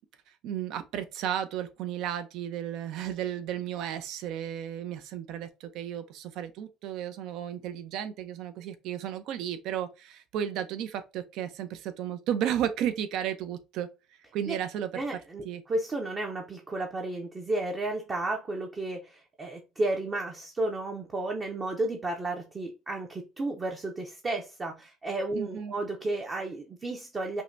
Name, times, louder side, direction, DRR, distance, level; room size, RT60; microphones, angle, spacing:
voice 1, 0.4-13.9 14.3-15.0 15.4-15.6 25.3-25.7, right 10 dB, 65° right, 0.6 m, -33 dB
voice 2, 14.9-27.4, right 2 dB, 25° right, 0.6 m, -33 dB
5.4 x 2.2 x 2.6 m
cardioid pair, 135°, 0 cm